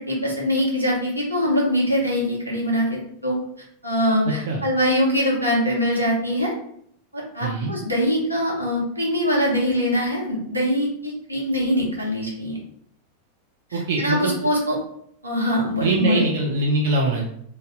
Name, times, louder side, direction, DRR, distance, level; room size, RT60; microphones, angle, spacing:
voice 1, 0.1-3.4 3.8-6.5 7.1-12.6 13.7-14.8 15.2-16.3, equal, 85° right, -3 dB, 0.8 m, -23 dB
voice 2, 7.4-7.7 13.7-14.5 15.8-17.3, right 2 dB, 55° right, -1 dB, 0.4 m, -23 dB
2.6 x 2.1 x 3.5 m, 0.68 s
figure-of-eight pair, 90°, 0 cm